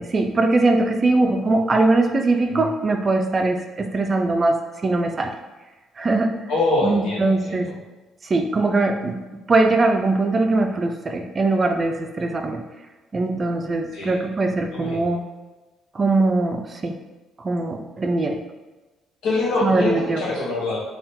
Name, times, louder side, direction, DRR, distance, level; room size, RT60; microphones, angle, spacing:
voice 1, 0.0-5.3 6.0-6.3 6.8-7.7 8.2-12.6 13.1-15.2 15.9-17.0 17.4-18.4 19.6-20.3, right 2 dB, 30° right, 5 dB, 0.4 m, -21 dB
voice 2, 6.5-7.7 13.9-14.2 14.7-15.1 19.2-20.8, left 2 dB, 80° left, -5 dB, 1.2 m, -24 dB
3.5 x 2.3 x 4.2 m, 1.2 s
cardioid pair, 120°, 0 cm